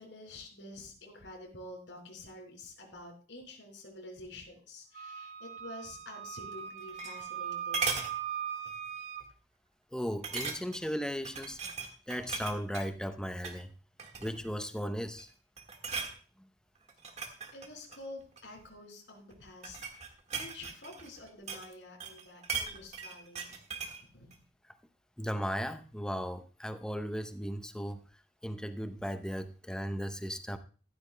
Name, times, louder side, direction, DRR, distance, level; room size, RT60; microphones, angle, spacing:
voice 1, 0.0-8.0 17.5-23.5 24.1-24.3, left 1 dB, 85° left, 0 dB, 4.7 m, -48 dB
Wind instrument woodwind instrument, 4.9-9.3, right 9 dB, 90° right, 2.1 m, -40 dB
sound 1, 6.6-7.4 7.7-8.1 8.7-8.9 9.2-9.3 10.2-10.9 11.2-12.9 13.3-13.6 14.0-14.5 15.0-15.3 15.6-16.1 16.9-18.5 19.3-21.7 22.0-24.0 24.3-24.4, right 5 dB, 40° right, 1.6 m, -38 dB
voice 2, 9.9-11.6 12.1-13.7 14.2-15.3 25.2-28.0 28.4-30.6, equal, 5° left, 10 dB, 0.7 m, -36 dB
15.0 x 12.0 x 2.2 m, 0.38 s
head